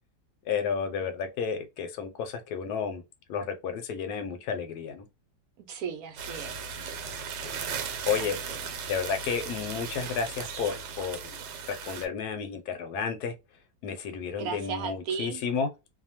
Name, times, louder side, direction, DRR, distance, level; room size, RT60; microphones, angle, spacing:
voice 1, 0.5-3.0 3.3-5.1 8.1-8.4 8.9-11.3 11.7-13.3 13.8-15.7, left 6 dB, 75° left, 1.1 m, -31 dB
voice 2, 5.6-6.7 8.2-8.6 14.4-15.4, right 6 dB, 70° right, 1.0 m, -36 dB
sound 1, 6.2-12.1, right 6 dB, 85° right, 1.2 m, -37 dB
2.7 x 2.2 x 2.8 m
omnidirectional pair, 1.9 m